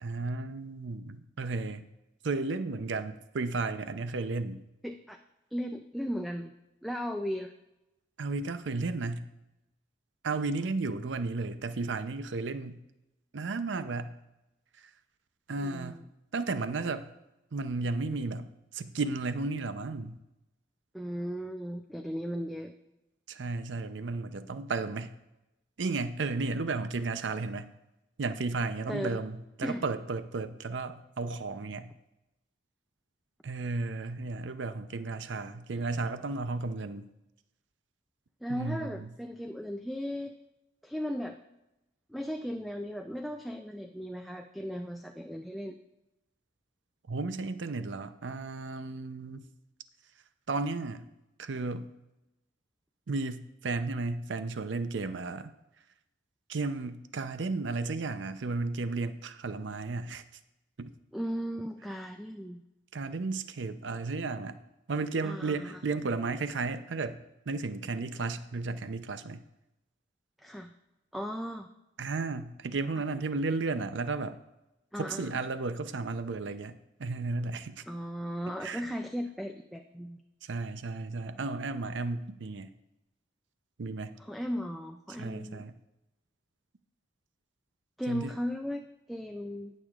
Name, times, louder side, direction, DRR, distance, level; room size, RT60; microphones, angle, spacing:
voice 1, 0.0-1.9 2.2-4.6 8.2-9.3 10.2-12.8 13.3-14.2 15.5-16.0 16.3-17.1 17.5-18.5 18.7-20.2 23.3-25.1 25.8-27.7 28.2-31.9 33.4-37.1 38.5-39.1 47.1-49.4 50.5-51.1 51.4-51.9 53.1-55.5 56.5-60.2 60.8-60.9 62.9-64.6 64.9-69.4 72.0-74.4 75.0-77.8 78.6-78.8 80.4-82.7 83.8-84.2 85.2-85.7 88.1-88.3, right 3 dB, 80° right, 11 dB, 0.6 m, -33 dB
voice 2, 4.8-5.2 5.5-6.5 6.8-7.5 15.6-16.1 20.9-22.7 28.9-29.2 29.6-29.8 38.4-40.4 40.8-41.4 42.1-45.8 61.1-62.6 65.2-65.8 70.4-70.7 71.1-71.7 74.9-75.3 77.9-80.2 84.2-85.6 88.0-89.7, equal, ahead, 4 dB, 0.3 m, -36 dB
19.0 x 6.4 x 2.4 m, 0.93 s
head